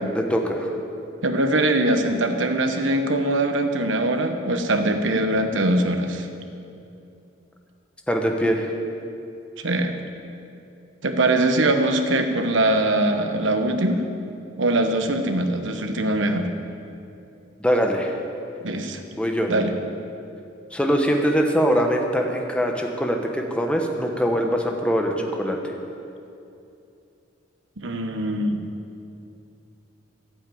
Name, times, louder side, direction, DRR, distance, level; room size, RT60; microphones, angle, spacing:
voice 1, 0.1-0.7 8.1-8.7 17.6-18.1 19.2-19.5 20.7-25.6, equal, 5° left, 2 dB, 1.0 m, -22 dB
voice 2, 1.2-6.3 9.6-10.0 11.0-14.0 14.6-16.5 18.6-19.0 19.5-19.7 27.8-28.6, right 1 dB, 80° right, 6 dB, 1.1 m, -22 dB
12.0 x 8.6 x 8.4 m, 2.7 s
head